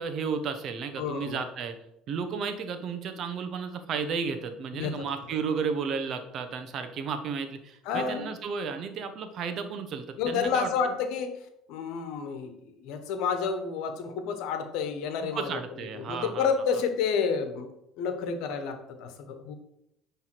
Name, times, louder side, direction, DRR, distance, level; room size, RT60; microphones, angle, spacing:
voice 1, 0.0-1.7 2.1-10.9 15.3-16.5, right 5 dB, 55° right, 8 dB, 1.0 m, -33 dB
voice 2, 1.0-1.4 4.7-5.0 7.8-8.3 10.2-15.6 15.9-17.7 18.0-19.5, left 6 dB, 70° left, 7 dB, 1.1 m, -30 dB
9.6 x 3.5 x 4.6 m, 0.82 s
hypercardioid pair, 70°, 0 cm